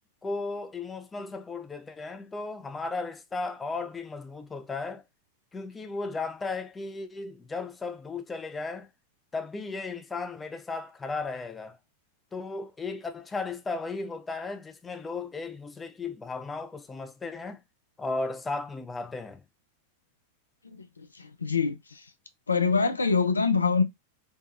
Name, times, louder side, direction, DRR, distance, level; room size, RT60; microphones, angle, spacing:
voice 1, 0.2-5.0 5.5-8.9 9.3-11.8 12.3-17.6 18.0-19.4, left 3 dB, 15° left, 0.4 m, -35 dB
voice 2, 21.4-21.8 22.5-23.8, left 5 dB, 75° left, 0.4 m, -23 dB
3.3 x 2.2 x 2.5 m
figure-of-eight pair, 90°, 0 cm